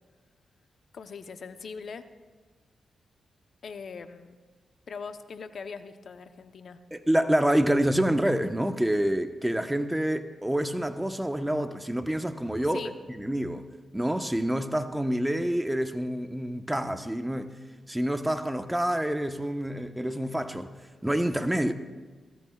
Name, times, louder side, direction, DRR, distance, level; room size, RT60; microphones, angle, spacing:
voice 1, 0.9-2.0 3.6-4.4 4.9-6.8 12.7-13.0, left 5 dB, 65° left, 0.9 m, -41 dB
voice 2, 6.9-12.8 13.1-13.6 13.9-17.5 17.9-20.7 21.0-21.7, right 1 dB, 10° right, 1.1 m, -27 dB
24.0 x 17.5 x 2.4 m
supercardioid pair, 50°, 0 cm